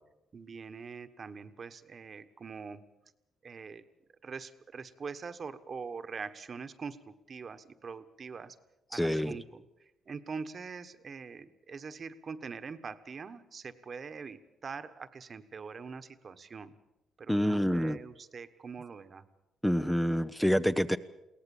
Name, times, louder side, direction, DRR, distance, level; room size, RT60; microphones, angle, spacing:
voice 1, 0.3-2.8 3.4-3.8 4.2-7.0 7.3-8.6 8.9-9.6 10.1-16.7 17.2-19.2, right 5 dB, 45° right, 10 dB, 1.3 m, -43 dB
voice 2, 8.9-9.4 17.3-18.0 19.6-21.0, equal, 5° left, 10 dB, 0.7 m, -27 dB
22.0 x 17.5 x 7.3 m, 0.95 s
cardioid pair, 90°, 0 cm